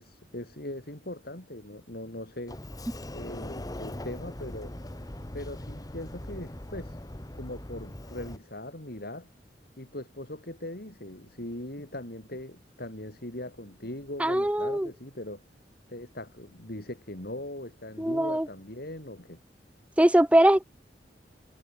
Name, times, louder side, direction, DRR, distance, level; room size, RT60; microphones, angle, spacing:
voice 1, 0.0-2.6 3.1-4.8 5.3-7.0 7.3-9.3 9.8-15.4 15.9-19.4, left 1 dB, 60° left, 5.1 m, -40 dB
Sliding door, 2.5-8.4, left 1 dB, 20° left, 1.5 m, -40 dB
voice 2, 14.2-14.9 18.0-18.5 20.0-20.6, right 1 dB, 5° right, 0.7 m, -21 dB
head